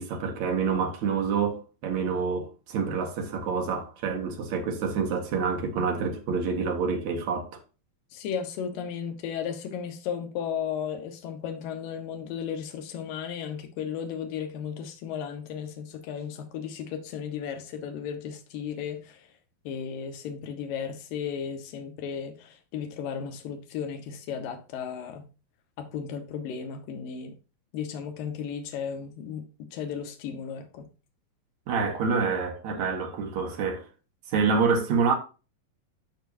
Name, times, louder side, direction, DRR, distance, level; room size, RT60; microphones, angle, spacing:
voice 1, 0.0-7.5 31.7-33.9 34.3-35.1, right 5 dB, 60° right, 2.5 m, -27 dB
voice 2, 8.1-19.3 19.6-25.3 25.8-27.4 27.7-30.9, left 7 dB, 75° left, 2.9 m, -35 dB
13.5 x 4.6 x 2.7 m
omnidirectional pair, 4.2 m